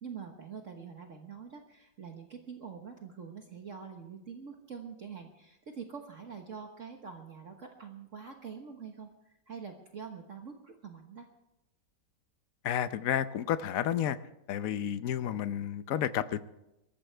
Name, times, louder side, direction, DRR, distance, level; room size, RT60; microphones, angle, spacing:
voice 1, 0.0-11.3, right 6 dB, 50° right, 3 dB, 1.5 m, -45 dB
voice 2, 12.6-14.2 14.5-16.4, left 10 dB, 60° left, 13 dB, 1.0 m, -31 dB
22.5 x 14.0 x 3.4 m, 0.90 s
omnidirectional pair, 1.9 m